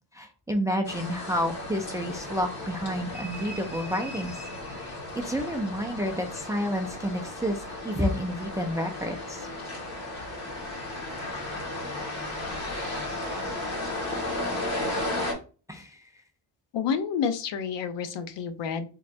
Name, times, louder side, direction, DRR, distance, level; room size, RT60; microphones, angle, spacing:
voice 1, 0.1-9.5 15.7-16.0, equal, 5° right, 4 dB, 0.4 m, -30 dB
sound 1, 0.8-15.3, left 1 dB, 35° left, 1.6 m, -34 dB
voice 2, 16.7-18.9, left 6 dB, 65° left, 10 dB, 0.7 m, -29 dB
3.8 x 3.3 x 2.6 m, 0.35 s
cardioid pair, 125°, 46 cm